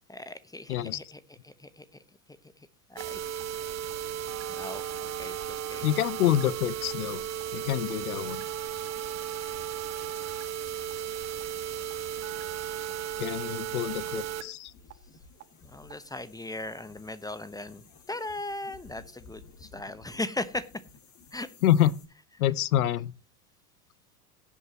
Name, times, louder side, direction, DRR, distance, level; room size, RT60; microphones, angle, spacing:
voice 1, 0.1-1.9 2.6-3.2 4.5-5.8 15.6-20.7 21.3-21.5 22.4-22.5, left 2 dB, 10° left, 0.9 m, -38 dB
voice 2, 0.7-1.0 5.8-7.2 7.5-8.4 13.2-14.7 21.6-21.9 22.4-23.1, left 12 dB, 75° left, 0.9 m, -26 dB
sound 1, 3.0-14.4 14.9-15.0 15.4-15.5 15.9-16.0, right 9 dB, 35° right, 1.6 m, -35 dB
sound 2, 13.9-22.1, left 4 dB, 40° left, 3.4 m, -55 dB
17.5 x 8.4 x 2.9 m
hypercardioid pair, 90°, 44 cm